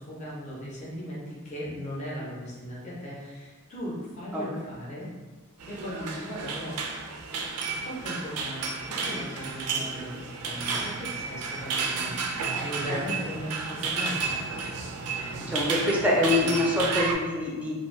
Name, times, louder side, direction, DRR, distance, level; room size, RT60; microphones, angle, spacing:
voice 1, 0.0-5.1 5.7-6.8 7.6-14.3, equal, 30° left, -6 dB, 0.7 m, -37 dB
sound 1, 5.6-17.1, right 4 dB, 85° right, 0.4 m, -32 dB
voice 2, 15.5-17.8, left 2 dB, 5° right, -4 dB, 0.5 m, -25 dB
2.6 x 2.2 x 3.1 m, 1.3 s
head